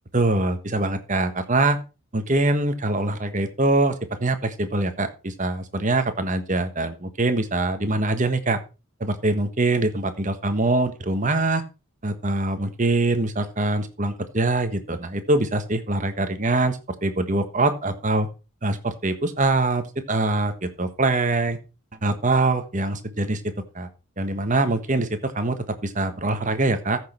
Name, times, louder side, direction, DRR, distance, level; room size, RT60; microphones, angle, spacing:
voice 1, 0.1-1.8 2.1-8.6 9.0-11.6 12.0-18.3 18.6-21.6 22.0-23.9 24.2-27.0, right 2 dB, 35° right, 9 dB, 1.4 m, -23 dB
14.5 x 6.4 x 4.5 m, 0.31 s
head